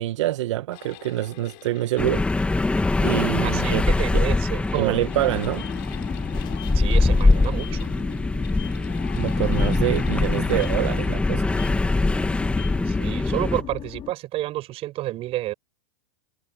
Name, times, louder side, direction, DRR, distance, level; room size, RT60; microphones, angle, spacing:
voice 1, 0.0-2.2 3.0-3.8 4.1-4.2 4.7-5.7 9.2-11.5, right 15 dB, 70° right, 1.4 m, -26 dB
sound 1, 0.7-11.7, left 36 dB, 50° left, 7.0 m, -46 dB
sound 2, 2.0-13.6, left 2 dB, 5° left, 2.2 m, -23 dB
voice 2, 3.4-5.0 6.7-7.9 12.9-15.5, right 16 dB, 35° right, 7.2 m, -30 dB
sound 3, 5.1-14.1, left 11 dB, 30° left, 3.3 m, -38 dB
hypercardioid pair, 130°, 16 cm